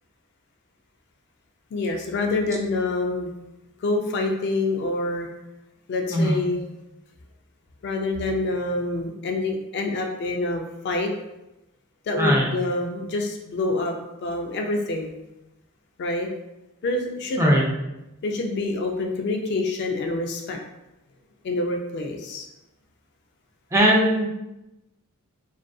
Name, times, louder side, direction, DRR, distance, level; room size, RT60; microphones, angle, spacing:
voice 1, 1.7-3.3 3.8-5.3 5.9-6.6 7.8-11.1 12.1-14.0 14.2-15.1 16.0-16.3 16.8-17.5 18.2-20.6 21.4-22.5, left 2 dB, 50° left, 2 dB, 0.3 m, -26 dB
voice 2, 6.1-6.4 12.2-12.4 17.4-17.6 23.7-24.3, equal, 15° right, -3 dB, 0.4 m, -19 dB
2.4 x 2.4 x 2.2 m, 0.94 s
head